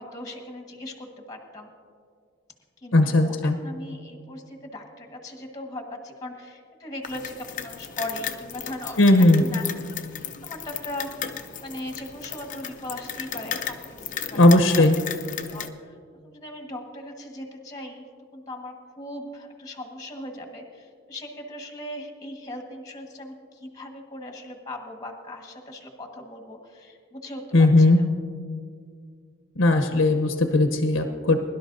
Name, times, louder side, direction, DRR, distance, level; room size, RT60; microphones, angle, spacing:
voice 1, 0.0-1.7 2.8-11.2 11.6-14.9 15.5-15.9 16.2-18.0 18.3-27.4 27.8-28.0, left 1 dB, 20° left, 3 dB, 1.4 m, -39 dB
voice 2, 2.9-3.6 9.0-9.4 14.3-15.0 27.5-28.0 29.6-31.4, left 2 dB, 80° left, 5 dB, 0.8 m, -17 dB
sound 1, 7.0-15.7, left 8 dB, 40° left, 0.6 m, -35 dB
22.0 x 12.0 x 2.6 m, 2.1 s
head